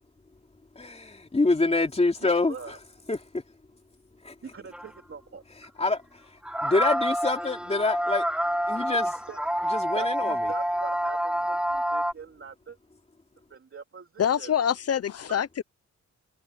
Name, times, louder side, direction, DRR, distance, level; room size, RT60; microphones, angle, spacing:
voice 1, 0.7-2.8 3.1-3.4 4.2-4.3 5.6-8.2 8.6-9.1 9.6-10.5, left 3 dB, 20° left, 3.0 m, -27 dB
voice 2, 2.2-2.8 4.4-5.4 9.0-9.4 9.9-12.8 13.5-14.5, right 5 dB, 45° right, 3.3 m, -43 dB
sound 1, 4.7-4.9 5.6-5.7 6.4-12.1, equal, 5° right, 1.7 m, -28 dB
voice 3, 14.2-15.6, left 9 dB, 55° left, 0.9 m, -25 dB
wide cardioid pair, 140°, 29 cm